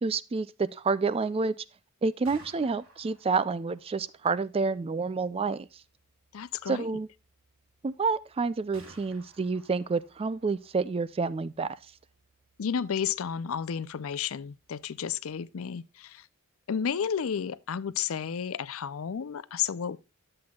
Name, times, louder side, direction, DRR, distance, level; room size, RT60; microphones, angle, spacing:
voice 1, 0.0-1.5 2.0-5.7 6.7-7.1 7.8-11.8, right 4 dB, 25° right, 0.4 m, -29 dB
Gunshot gunfire, 2.0-15.8, right 2 dB, 70° right, 2.6 m, -60 dB
voice 2, 6.3-6.9 12.6-16.3 16.7-20.0, left 7 dB, 70° left, 0.5 m, -32 dB
10.5 x 7.7 x 2.3 m
head